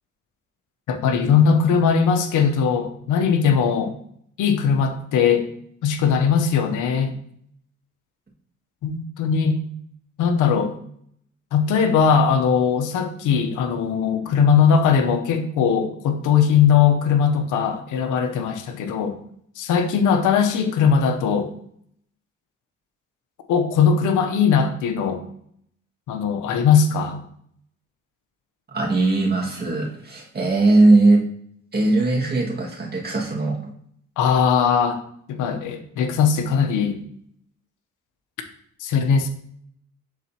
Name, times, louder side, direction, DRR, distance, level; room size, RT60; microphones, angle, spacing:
voice 1, 0.9-3.9 4.4-5.5 5.8-7.1 8.8-9.6 10.2-10.7 11.5-19.2 19.6-21.5 23.5-25.2 26.1-27.2 34.2-35.0 35.3-37.0 38.8-39.3, left 6 dB, 90° left, 7 dB, 0.8 m, -19 dB
voice 2, 28.7-31.2 31.7-33.7, right 2 dB, 30° right, -2 dB, 1.9 m, -19 dB
11.0 x 4.1 x 2.8 m, 0.67 s
cardioid pair, 90°, 30 cm